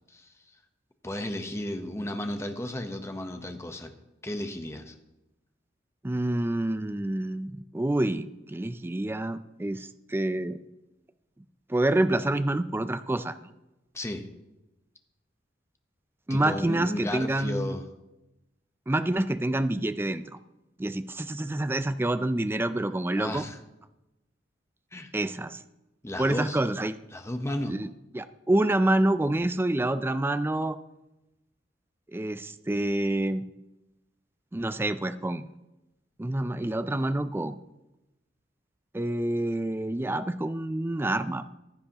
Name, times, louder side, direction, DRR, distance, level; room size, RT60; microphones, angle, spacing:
voice 1, 1.0-3.9 4.2-4.9 13.9-14.3 16.3-17.9 23.2-23.6 24.9-25.1 26.0-26.6 27.1-27.8, left 1 dB, 15° left, 6 dB, 0.9 m, -34 dB
voice 2, 6.0-10.6 11.7-13.5 16.3-17.7 18.9-20.2 20.8-23.4 25.1-25.6 26.2-27.0 27.7-27.9 28.1-30.8 32.1-33.4 34.5-35.5 36.2-37.6 38.9-41.5, right 1 dB, 10° right, 12 dB, 0.4 m, -27 dB
15.0 x 10.5 x 2.9 m, 0.97 s
head